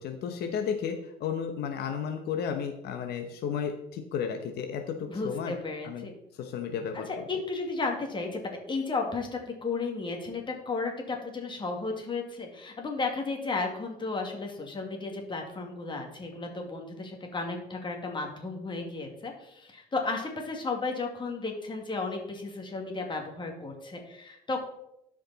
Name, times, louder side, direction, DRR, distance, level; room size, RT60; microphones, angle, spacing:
voice 1, 0.0-5.6 5.8-6.1 6.3-7.1, left 7 dB, 70° left, 5 dB, 1.0 m, -33 dB
voice 2, 5.1-6.1 6.9-24.6, left 3 dB, 30° left, 2 dB, 2.2 m, -34 dB
13.0 x 5.1 x 4.1 m, 0.82 s
cardioid pair, 110°, 17 cm